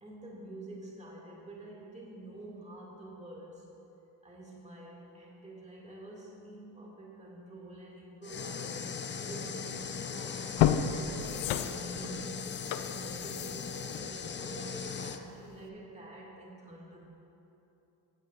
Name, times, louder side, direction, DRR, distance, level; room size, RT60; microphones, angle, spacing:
voice 1, 0.0-3.7 4.2-9.8 10.0-10.5 10.9-12.5 12.8-17.0, right 2 dB, 15° right, -4 dB, 2.0 m, -47 dB
sound 1, 8.2-15.2, left 6 dB, 25° left, 0.4 m, -39 dB
sound 2, 9.8-10.0 10.4-15.1 15.5-15.6, left 10 dB, 80° left, 0.5 m, -32 dB
15.0 x 8.1 x 2.4 m, 3.0 s
supercardioid pair, 65°, 45 cm